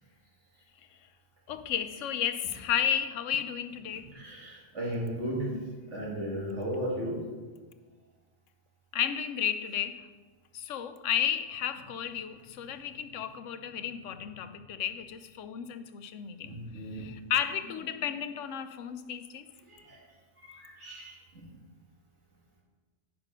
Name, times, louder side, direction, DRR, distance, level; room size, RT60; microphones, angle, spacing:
voice 1, 1.5-4.1 5.1-5.7 8.9-10.0 10.5-16.6 16.9-19.5, left 9 dB, 90° left, 10 dB, 1.0 m, -33 dB
voice 2, 4.1-5.5 5.9-7.2 16.4-17.1 19.7-20.0 20.4-21.4, right 1 dB, 70° right, -3 dB, 2.4 m, -35 dB
9.0 x 5.8 x 5.1 m, 1.4 s
omnidirectional pair, 1.3 m